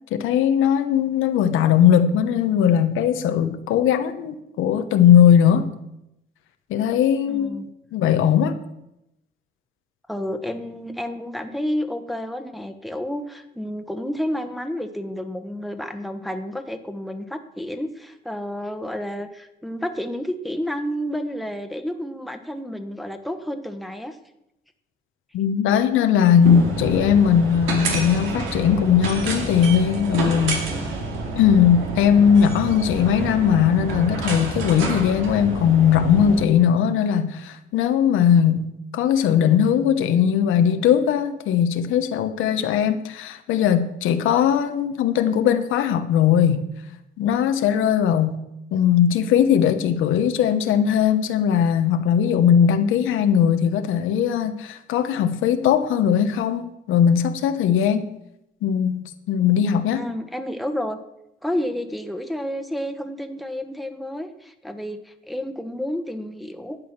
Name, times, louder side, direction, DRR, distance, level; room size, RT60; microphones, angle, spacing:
voice 1, 0.1-5.7 6.7-7.6 7.9-8.6 25.3-30.9 31.4-46.6 47.2-48.4 48.7-58.1 58.6-60.0, left 8 dB, 85° left, 8 dB, 1.1 m, -19 dB
voice 2, 7.3-7.7 10.1-24.2 59.9-61.0 61.4-66.8, equal, ahead, 6 dB, 1.3 m, -30 dB
sound 1, 26.4-36.5, right 3 dB, 85° right, 2.5 m, -29 dB
12.0 x 8.5 x 6.0 m, 0.84 s
cardioid pair, 90°, 20 cm